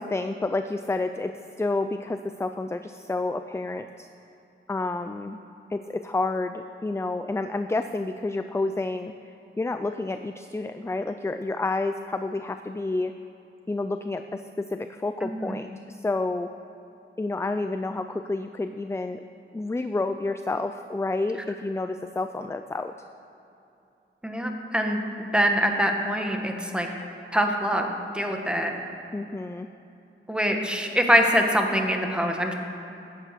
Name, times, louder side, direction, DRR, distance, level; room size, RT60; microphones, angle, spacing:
voice 1, 0.0-4.1 4.7-5.4 5.7-9.1 9.6-13.1 13.7-16.5 17.2-19.2 19.5-22.9 29.1-29.7, left 2 dB, 15° left, 9 dB, 0.4 m, -29 dB
voice 2, 15.2-15.6 24.2-26.9 27.3-27.9 28.1-28.7 30.3-32.5, equal, 5° right, 2 dB, 1.4 m, -24 dB
15.0 x 10.0 x 6.7 m, 2.8 s
wide cardioid pair, 145°, 21 cm